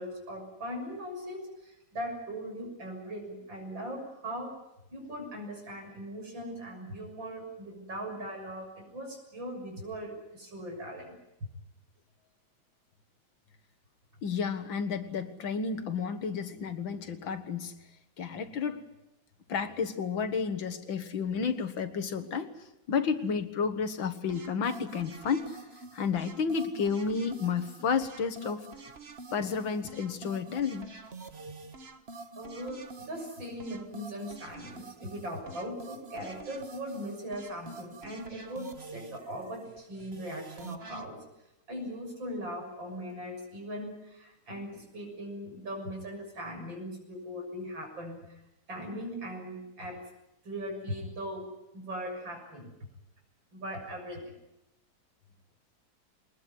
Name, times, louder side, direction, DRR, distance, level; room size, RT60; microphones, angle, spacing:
voice 1, 0.0-4.5 4.9-11.2 32.4-41.2 41.7-48.4 48.7-50.0 50.4-51.5 51.7-52.7 53.5-54.2, equal, 80° right, 2 dB, 7.6 m, -39 dB
voice 2, 14.2-17.7 18.2-18.8 19.5-22.5 22.9-25.6 25.9-28.7 29.3-30.9, left 6 dB, 85° left, 9 dB, 2.4 m, -31 dB
sound 1, 24.3-41.1, right 3 dB, 35° right, 1.5 m, -47 dB
22.5 x 20.5 x 9.6 m, 0.90 s
omnidirectional pair, 2.1 m